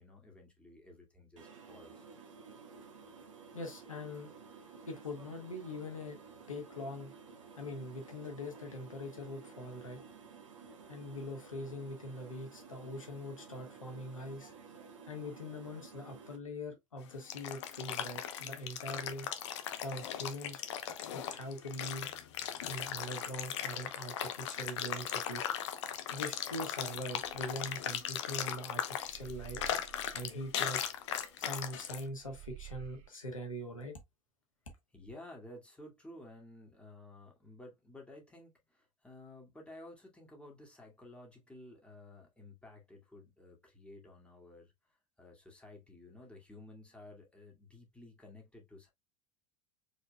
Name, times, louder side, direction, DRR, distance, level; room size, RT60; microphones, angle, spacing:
voice 1, 0.0-2.1 34.9-44.7 45.2-48.9, left 1 dB, 5° left, 2.2 m, -53 dB
sound 1, 1.4-16.4, right 5 dB, 70° right, 1.4 m, -53 dB
voice 2, 3.5-4.3 4.9-6.2 6.5-7.1 7.6-10.0 10.9-14.5 15.1-19.3 19.8-20.6 21.1-22.1 22.7-25.5 26.1-29.6 30.1-30.8 31.4-34.0, left 1 dB, 80° left, 1.6 m, -42 dB
sound 2, 17.0-32.0, left 9 dB, 60° left, 0.8 m, -38 dB
sound 3, 27.2-28.6 29.0-31.9 32.2-33.1, right 18 dB, 40° right, 0.6 m, -52 dB
4.9 x 4.2 x 2.3 m
figure-of-eight pair, 75°, 17 cm